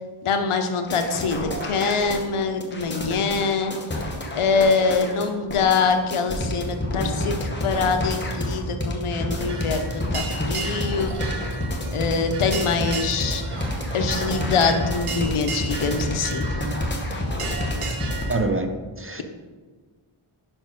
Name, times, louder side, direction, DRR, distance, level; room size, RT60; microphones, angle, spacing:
voice 1, 0.2-3.8 4.3-11.5 11.9-13.4 13.9-16.5, left 4 dB, 80° left, 7 dB, 0.8 m, -24 dB
sound 1, 0.9-18.3, left 1 dB, 20° left, 0.9 m, -29 dB
sound 2, 9.4-18.4, right 4 dB, 85° right, 1.0 m, -35 dB
voice 2, 18.3-19.2, right 2 dB, 30° right, 6 dB, 0.4 m, -26 dB
5.6 x 4.4 x 5.2 m, 1.4 s
wide cardioid pair, 105°, 50 cm